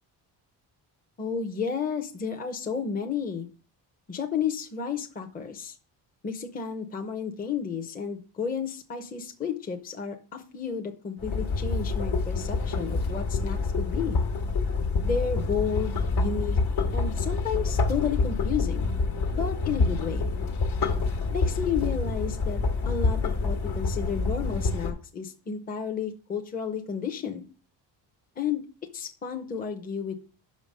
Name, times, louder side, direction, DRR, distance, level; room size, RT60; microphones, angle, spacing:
voice 1, 1.2-3.5 4.1-5.8 6.2-14.2 15.0-16.6 16.9-18.9 19.3-20.3 21.3-22.6 22.9-27.4 28.4-28.6 28.9-30.1, left 6 dB, 20° left, 3 dB, 0.7 m, -32 dB
sound 1, 11.2-24.9, left 3 dB, 65° left, 1.4 m, -27 dB
5.8 x 5.2 x 6.5 m, 0.38 s
cardioid pair, 130°, 43 cm